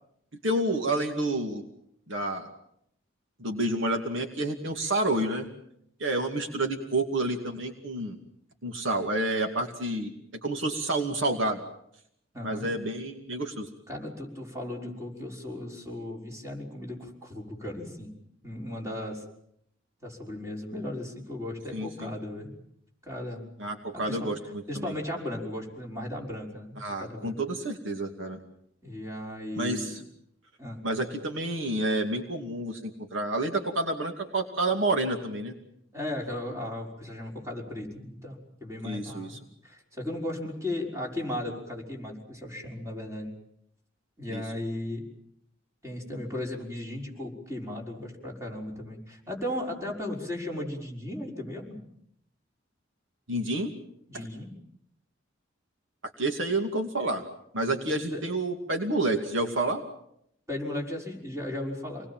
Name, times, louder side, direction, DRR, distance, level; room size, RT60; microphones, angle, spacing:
voice 1, 0.4-1.6 2.1-2.5 3.4-5.5 6.0-8.2 8.6-10.1 10.4-11.6 12.4-13.7 21.7-22.1 23.6-24.9 26.8-28.4 29.5-30.0 30.8-35.5 38.8-39.4 44.3-44.4 53.3-53.7 54.1-54.3 56.2-57.2 57.5-59.8, right 2 dB, 70° right, 4 dB, 2.6 m, -29 dB
voice 2, 12.3-12.7 13.9-18.1 18.4-19.2 20.0-22.5 23.0-23.5 24.1-24.3 24.7-27.4 28.8-29.9 30.6-30.8 35.9-43.3 44.2-45.1 45.8-51.8 54.1-54.5 58.1-58.2 60.5-62.1, left 1 dB, 15° right, 0 dB, 6.0 m, -36 dB
28.0 x 20.5 x 7.5 m, 0.73 s
head